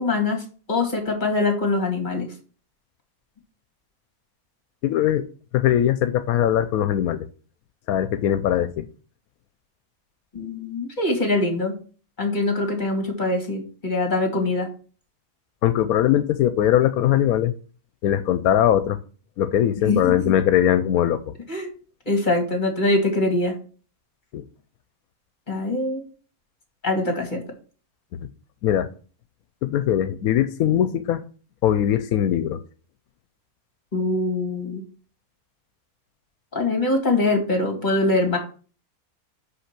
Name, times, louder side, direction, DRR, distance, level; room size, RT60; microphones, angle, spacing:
voice 1, 0.0-2.3 10.3-11.7 12.2-14.7 19.8-20.3 21.5-21.7 22.1-23.5 25.5-26.0 26.8-27.4 33.9-34.8 36.5-38.4, left 2 dB, 30° left, 3 dB, 2.4 m, -23 dB
voice 2, 4.8-5.2 5.5-7.3 7.9-8.9 15.6-17.5 18.0-19.0 19.4-21.3 24.3-24.4 28.1-28.2 28.6-28.9 29.6-31.2 31.6-32.6, left 11 dB, 85° left, 11 dB, 1.1 m, -21 dB
6.0 x 5.7 x 5.9 m, 0.39 s
omnidirectional pair, 1.5 m